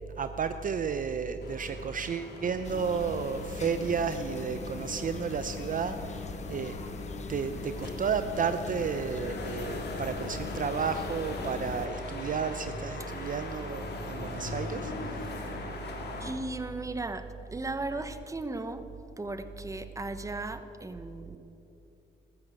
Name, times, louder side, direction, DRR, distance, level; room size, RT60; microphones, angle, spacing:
voice 1, 0.2-6.8 7.3-14.9, right 6 dB, 45° right, 10 dB, 0.7 m, -32 dB
sound 1, 1.4-16.3, left 3 dB, 55° left, 2.5 m, -41 dB
sound 2, 2.6-11.9, left 5 dB, 35° left, 0.6 m, -41 dB
voice 2, 16.2-18.8 19.2-21.4, right 2 dB, 15° right, 10 dB, 1.0 m, -36 dB
14.0 x 13.0 x 7.6 m, 2.9 s
cardioid pair, 90°, 20 cm